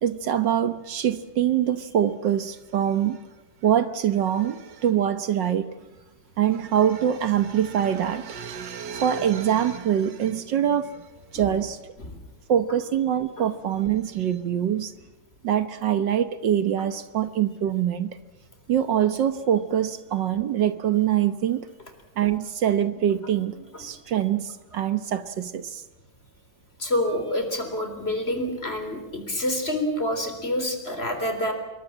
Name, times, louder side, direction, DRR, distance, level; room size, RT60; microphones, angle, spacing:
voice 1, 0.0-3.2 3.6-5.7 6.4-11.0 11.3-11.8 12.5-14.9 15.4-18.2 18.7-21.7 22.2-25.8, right 10 dB, 70° right, 1.7 m, -24 dB
voice 2, 26.8-31.5, left 1 dB, 30° left, 4.1 m, -27 dB
27.0 x 22.5 x 7.4 m
omnidirectional pair, 2.0 m